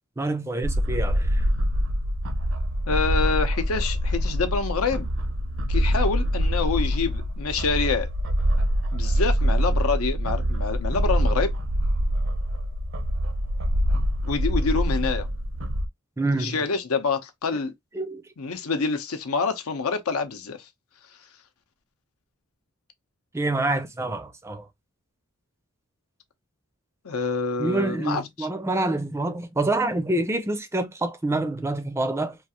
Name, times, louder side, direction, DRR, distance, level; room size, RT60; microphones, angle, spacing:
voice 1, 0.2-1.4 16.2-16.6 17.9-18.2 23.3-24.7 27.6-32.4, right 2 dB, 10° right, 0.4 m, -27 dB
sound 1, 0.6-15.9, equal, 60° right, 0.5 m, -24 dB
voice 2, 2.9-5.1 5.7-8.1 8.9-11.5 14.3-15.3 16.4-17.7 18.4-20.6 27.0-28.5, left 4 dB, 90° left, 0.7 m, -27 dB
3.1 x 2.4 x 2.8 m
head